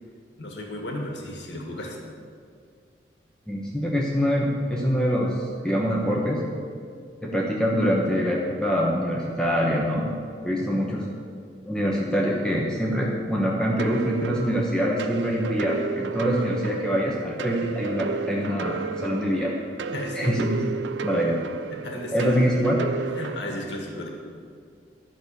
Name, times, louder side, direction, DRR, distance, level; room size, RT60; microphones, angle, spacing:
voice 1, 0.4-2.0 10.7-10.8 19.9-20.4 21.7-22.4 23.1-24.1, left 1 dB, 75° left, 1 dB, 1.8 m, -34 dB
voice 2, 3.5-6.4 7.2-10.2 10.4-11.0 11.7-19.5 20.1-20.6 21.0-21.4 22.1-22.8, equal, 5° left, -3 dB, 1.1 m, -24 dB
sound 1, 13.8-23.4, right 5 dB, 80° right, 0.4 m, -32 dB
11.5 x 6.3 x 8.5 m, 2.3 s
head